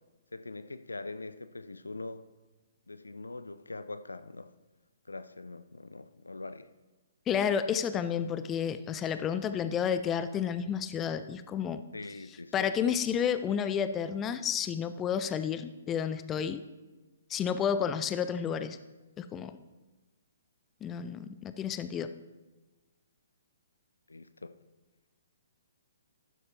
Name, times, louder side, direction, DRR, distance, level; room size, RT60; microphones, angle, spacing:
voice 1, 0.3-2.2 2.9-4.5 5.1-6.7 11.9-12.7 24.1-24.5, left 3 dB, 80° left, 12 dB, 0.5 m, -43 dB
voice 2, 7.3-11.8 12.5-16.6 17.3-18.8 19.2-19.5 20.8-22.1, left 8 dB, 15° left, 12 dB, 0.4 m, -31 dB
12.0 x 9.4 x 2.9 m, 1.2 s
figure-of-eight pair, 125°, 0 cm